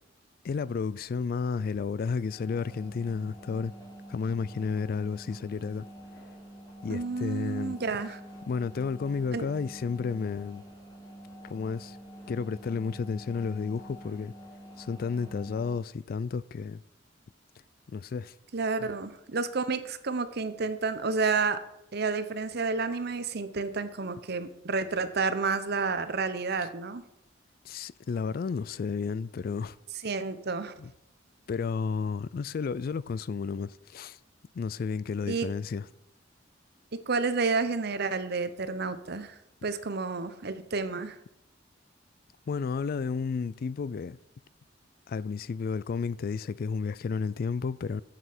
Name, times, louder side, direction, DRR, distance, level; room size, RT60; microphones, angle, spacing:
voice 1, 0.4-3.7 4.1-5.8 6.8-7.8 8.5-10.6 11.4-12.0 12.3-14.3 14.8-16.8 17.9-18.3 18.8-18.9 27.6-29.8 30.8-30.9 31.5-34.2 34.5-35.9 42.5-44.2 45.1-48.0, left 5 dB, 50° left, 0.3 m, -32 dB
sound 1, 2.2-15.8, equal, 20° left, 3.2 m, -47 dB
voice 2, 6.9-8.2 9.3-9.5 18.5-21.6 21.9-27.0 30.0-30.7 35.3-35.5 36.9-39.3 39.6-41.2, right 4 dB, 60° right, 0.8 m, -30 dB
7.9 x 7.6 x 6.0 m
head